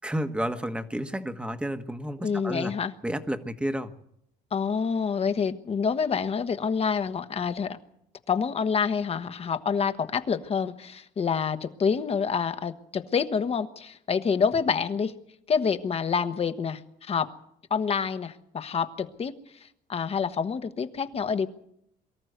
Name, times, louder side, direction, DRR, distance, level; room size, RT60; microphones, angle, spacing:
voice 1, 0.0-2.7 3.0-3.9, right 1 dB, 5° right, 8 dB, 1.4 m, -31 dB
voice 2, 2.2-2.9 4.5-7.8 8.3-15.1 15.5-17.3 17.7-19.3 19.6-21.5, left 6 dB, 35° left, 10 dB, 1.3 m, -27 dB
23.5 x 13.5 x 8.1 m, 0.77 s
cardioid pair, 110°, 17 cm